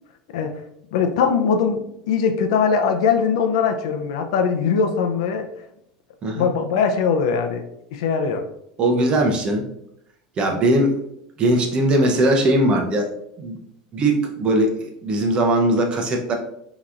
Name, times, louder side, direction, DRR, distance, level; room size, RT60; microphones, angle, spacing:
voice 1, 0.9-5.5 6.4-7.6 7.9-8.4, left 6 dB, 80° left, 6 dB, 0.6 m, -21 dB
voice 2, 8.8-9.6 10.4-11.0 11.4-13.1 13.4-13.6 13.9-16.3, right 1 dB, 30° right, 2 dB, 0.8 m, -19 dB
5.6 x 3.0 x 2.5 m, 0.77 s
supercardioid pair, 135°, 3 cm